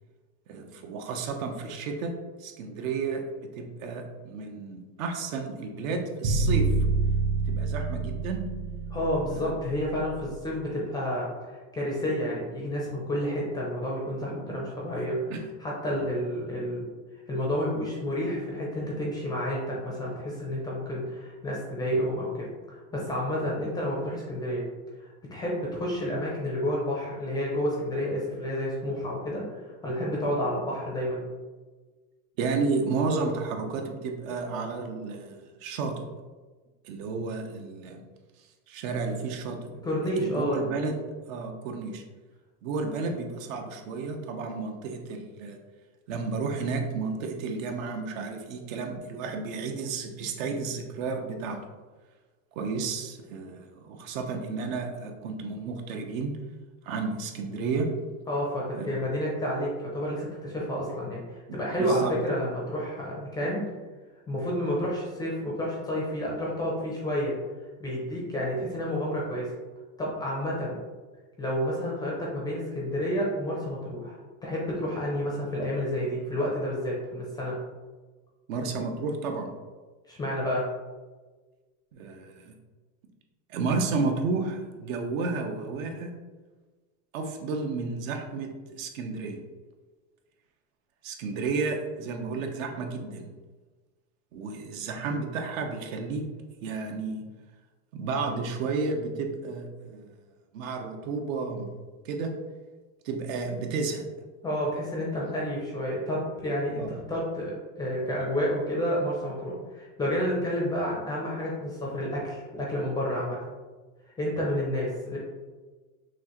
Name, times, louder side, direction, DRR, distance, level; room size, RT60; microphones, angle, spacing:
voice 1, 0.5-2.1 2.4-6.7 7.5-8.4 9.3-9.6 14.5-14.6 14.9-15.0 15.3-15.4 32.4-35.9 36.8-38.0 38.7-39.6 40.2-41.0 41.3-42.0 42.6-45.6 46.1-51.6 52.6-56.3 56.8-57.9 58.7-58.9 61.5-62.1 78.5-79.5 81.9-82.5 83.5-86.1 87.1-89.4 91.0-93.3 94.3-96.2 96.6-97.2 97.9-100.1 100.5-101.7 102.0-102.3 103.0-104.1 106.8-106.9, right 4 dB, 70° right, 4 dB, 0.8 m, -32 dB
sound 1, 6.2-10.3, right 3 dB, 40° right, 0.7 m, -27 dB
voice 2, 8.9-15.3 15.6-16.8 17.3-24.6 25.0-31.2 39.8-40.6 58.3-63.6 64.3-67.3 67.8-69.5 70.0-70.8 71.4-77.6 80.1-80.6 104.4-107.5 107.8-113.4 114.2-115.2, equal, 10° left, -4 dB, 0.4 m, -30 dB
6.1 x 2.5 x 2.9 m, 1.3 s
supercardioid pair, 160°, 41 cm